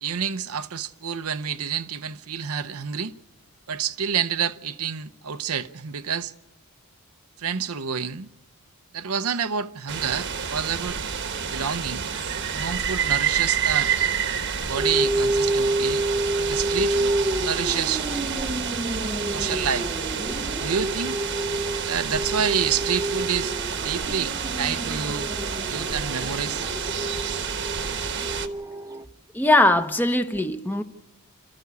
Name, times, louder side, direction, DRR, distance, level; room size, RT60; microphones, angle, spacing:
voice 1, 0.0-3.1 3.7-6.3 7.4-8.3 8.9-11.0 11.5-12.0 12.5-14.0 14.7-16.0 16.4-18.0 19.3-19.9 20.6-21.2 21.9-23.5 23.8-25.3 25.7-26.7, right 7 dB, 80° right, 0.8 m, -28 dB
sound 1, 9.9-28.5, right 7 dB, 55° right, 1.2 m, -29 dB
sound 2, 14.8-29.0, right 1 dB, 15° right, 0.7 m, -29 dB
voice 2, 29.3-30.8, left 1 dB, 10° left, 0.9 m, -20 dB
26.5 x 14.0 x 8.3 m
head